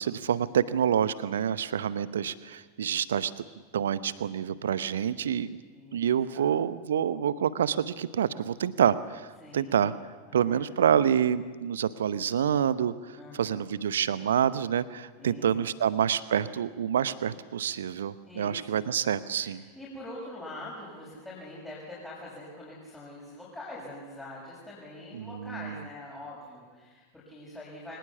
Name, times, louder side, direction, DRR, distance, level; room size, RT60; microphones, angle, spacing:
voice 1, 0.0-3.3 3.7-5.6 5.9-9.3 9.5-9.9 10.3-12.9 13.4-19.6 25.1-25.7, right 9 dB, 65° right, 16 dB, 0.8 m, -27 dB
voice 2, 5.7-6.5 9.4-9.9 10.3-10.7 13.2-13.6 15.2-15.9 18.2-18.9 19.4-28.0, left 1 dB, 5° left, -7 dB, 6.3 m, -44 dB
23.5 x 19.5 x 7.2 m, 1.5 s
figure-of-eight pair, 90°, 0 cm